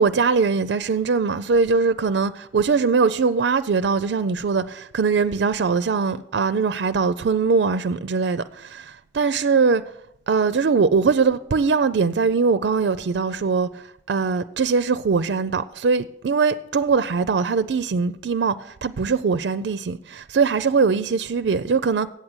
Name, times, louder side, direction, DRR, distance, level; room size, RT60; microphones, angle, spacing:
voice 1, 0.0-9.8 10.3-22.1, right 5 dB, 75° right, 0.4 m, -21 dB
8.3 x 7.5 x 8.0 m
head